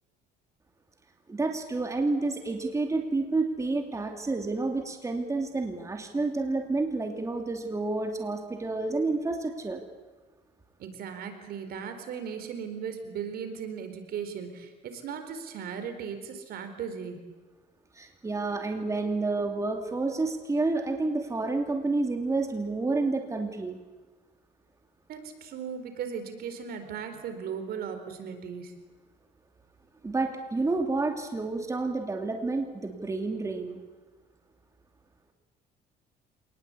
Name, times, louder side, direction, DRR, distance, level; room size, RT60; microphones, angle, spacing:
voice 1, 1.3-9.8 17.9-23.8 30.0-33.8, right 3 dB, 20° right, 4 dB, 2.7 m, -29 dB
voice 2, 10.8-17.2 25.1-28.7, right 7 dB, 65° right, 7 dB, 4.2 m, -37 dB
27.0 x 19.5 x 8.6 m, 1.3 s
cardioid pair, 110°, 17 cm